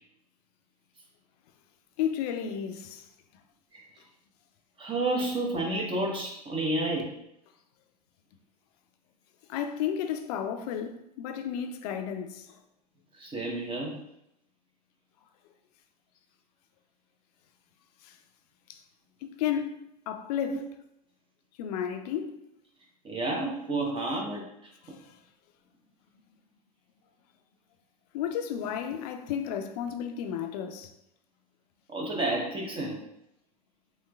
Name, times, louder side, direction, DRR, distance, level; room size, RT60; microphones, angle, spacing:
voice 1, 2.0-3.0 9.5-12.5 18.0-18.1 18.7-18.8 19.2-20.7 21.6-22.4 24.8-25.1 28.1-30.9, left 9 dB, 65° left, 0.4 m, -33 dB
voice 2, 4.8-7.1 13.1-14.0 20.5-20.6 23.0-24.7 31.9-33.0, right 2 dB, 25° right, 0.7 m, -30 dB
3.1 x 3.0 x 2.2 m
hypercardioid pair, 100°, 21 cm